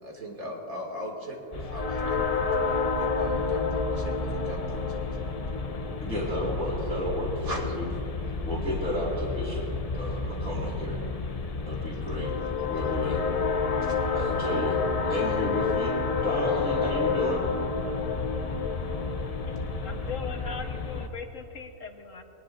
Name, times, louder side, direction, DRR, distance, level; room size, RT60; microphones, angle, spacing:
voice 1, 0.0-5.3 7.4-7.6 11.7-12.3 13.8-14.4, equal, 80° right, -1 dB, 2.8 m, -40 dB
sound 1, 1.5-21.1, left 4 dB, 40° left, 0.6 m, -29 dB
sound 2, 4.3-18.8, right 1 dB, 85° left, 1.6 m, -48 dB
voice 2, 6.0-7.9 8.5-11.0 11.7-12.3 12.6-13.2 14.1-15.9 16.2-17.5, left 1 dB, 5° left, -7 dB, 2.2 m, -32 dB
voice 3, 19.8-22.2, left 5 dB, 65° left, 4 dB, 1.6 m, -39 dB
23.0 x 18.5 x 2.6 m, 2.9 s
omnidirectional pair, 1.5 m